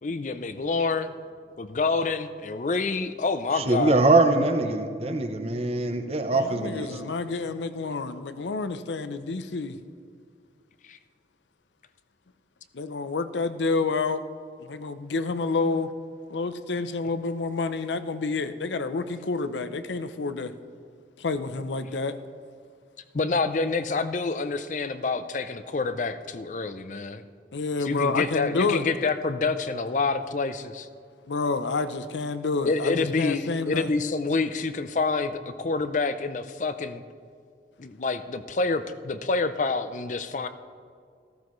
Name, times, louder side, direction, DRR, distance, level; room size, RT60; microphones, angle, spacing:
voice 1, 0.0-1.1 1.6-4.0 10.9-11.0 23.1-27.2 27.8-30.9 32.7-37.0 37.8-40.5, left 3 dB, 45° left, 11 dB, 0.5 m, -27 dB
voice 2, 3.5-7.1, right 2 dB, 35° right, 7 dB, 0.7 m, -23 dB
voice 3, 6.3-9.8 12.7-14.2 14.7-15.9 16.3-20.5 21.2-22.2 27.5-28.8 31.3-33.9, left 3 dB, 90° left, 11 dB, 0.6 m, -29 dB
14.0 x 14.0 x 3.1 m, 2.1 s
head